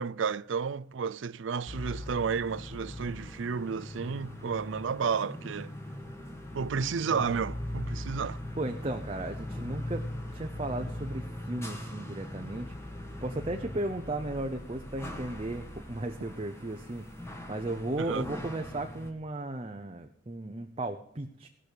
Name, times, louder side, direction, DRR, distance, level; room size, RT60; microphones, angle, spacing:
voice 1, 0.0-5.7 6.5-8.4 18.0-18.2, right 6 dB, 70° right, 0.4 m, -32 dB
sound 1, 1.7-19.1, left 1 dB, 15° left, 1.6 m, -40 dB
voice 2, 8.6-12.7 13.2-21.5, right 2 dB, 30° right, 0.7 m, -35 dB
17.5 x 6.2 x 6.7 m
head